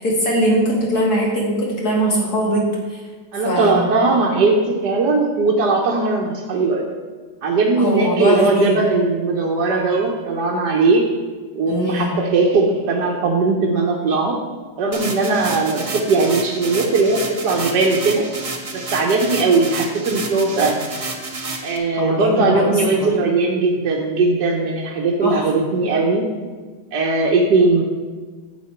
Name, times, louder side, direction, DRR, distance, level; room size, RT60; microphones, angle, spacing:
voice 1, 0.0-2.6 2.9-3.0 3.4-3.9 7.8-8.8 11.7-12.1 22.0-22.7 23.0-23.1 25.2-25.6, equal, 60° left, -4 dB, 2.8 m, -21 dB
voice 2, 3.3-6.8 7.4-11.0 11.5-14.4 14.8-18.2 18.7-20.8 21.6-26.3 26.9-27.8, right 3 dB, 70° right, -2 dB, 1.6 m, -19 dB
sound 1, 14.9-21.8, right 3 dB, 25° right, 0.8 m, -30 dB
10.5 x 7.6 x 4.5 m, 1.4 s
omnidirectional pair, 1.9 m